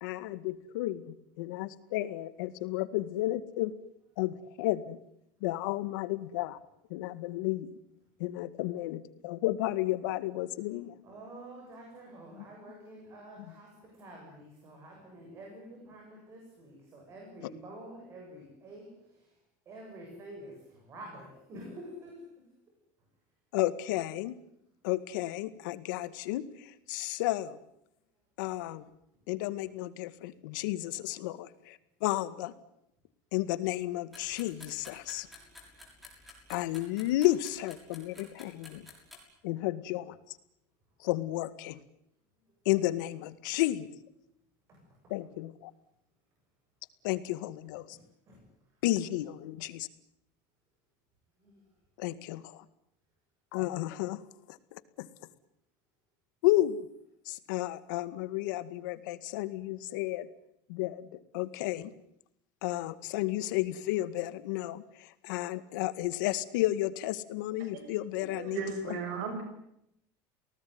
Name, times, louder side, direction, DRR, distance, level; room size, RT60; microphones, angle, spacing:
voice 1, 0.0-3.8 4.2-5.0 5.4-6.6 6.9-7.7 8.2-11.0 23.5-24.4 24.8-27.6 28.4-28.8 29.3-32.5 33.3-35.3 36.5-38.9 39.4-40.4 41.0-41.8 42.7-43.9 45.1-45.7 47.0-48.0 48.8-49.9 52.0-52.6 53.5-54.2 54.5-55.1 56.4-56.9 57.3-60.3 60.7-61.1 61.3-61.9 62.6-69.0, left 16 dB, 85° left, 13 dB, 2.0 m, -32 dB
voice 2, 11.0-19.4 19.6-22.5 44.7-45.1 47.9-48.8 51.4-51.7, right 1 dB, 25° right, 1 dB, 8.0 m, -49 dB
sound 1, 34.1-39.2, left 2 dB, ahead, 6.5 m, -52 dB
voice 3, 68.2-69.4, right 5 dB, 90° right, 5 dB, 6.4 m, -36 dB
29.5 x 19.0 x 9.6 m, 0.78 s
cardioid pair, 180°, 10 cm